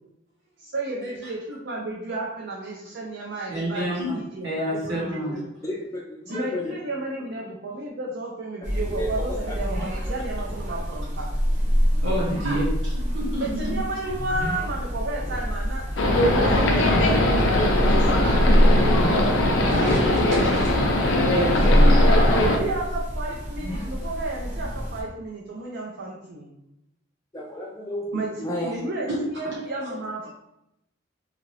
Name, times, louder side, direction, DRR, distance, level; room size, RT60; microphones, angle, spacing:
voice 1, 0.6-4.6 4.9-5.5 6.3-11.3 12.4-12.6 13.4-15.8 16.3-17.3 17.8-18.4 22.0-26.5 28.1-30.3, right 2 dB, 65° right, -3 dB, 0.5 m, -32 dB
voice 2, 3.5-4.2 4.4-5.3 12.0-13.5 19.5-20.7 21.3-22.4 29.1-29.2 29.8-29.9, equal, 80° right, -6 dB, 1.1 m, -29 dB
voice 3, 5.6-6.7 9.0-9.2 27.3-28.8, equal, 15° left, -3 dB, 0.3 m, -32 dB
sound 1, 8.6-25.0, equal, 40° right, 0.8 m, -24 dB
sound 2, 16.0-22.6, left 1 dB, 80° left, 0.5 m, -21 dB
2.8 x 2.4 x 3.1 m, 0.84 s
head